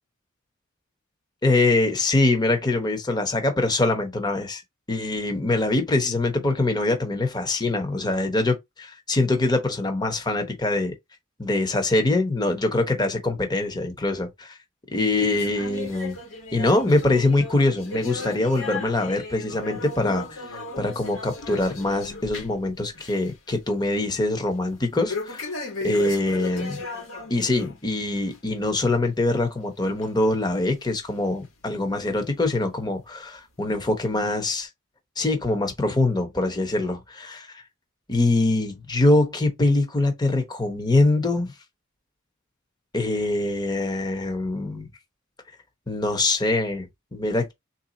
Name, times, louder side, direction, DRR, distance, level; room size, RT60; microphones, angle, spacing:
voice 1, 1.4-4.6 4.9-10.9 11.4-14.6 14.9-16.2 16.5-20.4 20.8-25.5 25.8-26.8 27.3-34.7 35.2-37.5 38.1-41.5 42.9-44.9 45.9-47.5, left 2 dB, 20° left, 0.9 m, -23 dB
sound 1, 15.1-22.7 22.9-23.3 23.7-23.8 25.1-27.8 28.2-28.4 29.0-29.1 30.0-30.1 30.9-31.0, left 3 dB, 75° left, 1.5 m, -36 dB
3.5 x 2.7 x 3.9 m
head